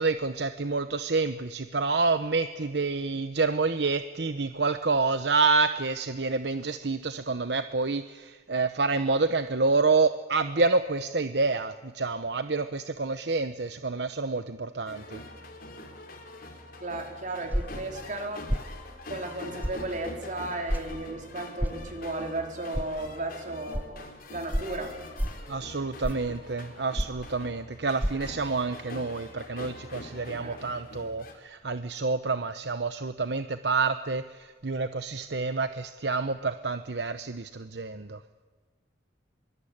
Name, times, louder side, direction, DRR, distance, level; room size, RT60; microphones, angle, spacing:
voice 1, 0.0-15.2 25.5-38.2, right 3 dB, 70° right, 10 dB, 0.9 m, -28 dB
sound 1, 14.9-31.3, left 2 dB, 55° left, 4.5 m, -44 dB
voice 2, 16.8-18.5 19.1-24.9 30.4-30.6, right 2 dB, 45° right, 3 dB, 4.5 m, -35 dB
sound 2, 17.5-17.8 18.5-18.7 19.6-19.8 20.7-20.9 21.6-21.8 22.7-22.9 23.7-23.8 24.5-24.7 25.2-25.4 26.0-26.3 27.0-27.2 28.0-28.1, equal, 10° right, 1.0 m, -28 dB
24.5 x 23.5 x 8.8 m, 1.3 s
head